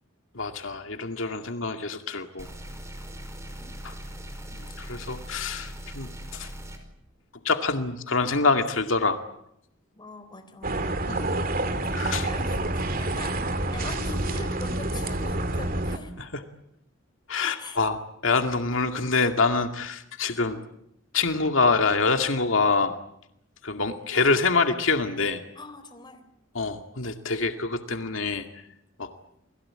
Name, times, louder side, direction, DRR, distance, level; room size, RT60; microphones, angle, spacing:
voice 1, 0.3-2.5 3.8-3.9 4.5-6.5 7.4-9.2 11.1-11.5 12.0-12.3 16.2-16.4 17.3-20.6 21.1-22.9 23.6-25.4 26.5-28.5 29.0-29.1, left 4 dB, 80° left, 6 dB, 2.1 m, -26 dB
sound 1, 2.4-6.8, equal, 15° right, 5.4 m, -40 dB
voice 2, 10.0-10.9 11.8-16.1 17.6-17.8 25.6-26.3, left 2 dB, 25° left, 8 dB, 4.0 m, -42 dB
sound 2, 10.6-16.0, right 2 dB, 45° right, 2.4 m, -28 dB
29.5 x 21.0 x 8.8 m, 0.76 s
head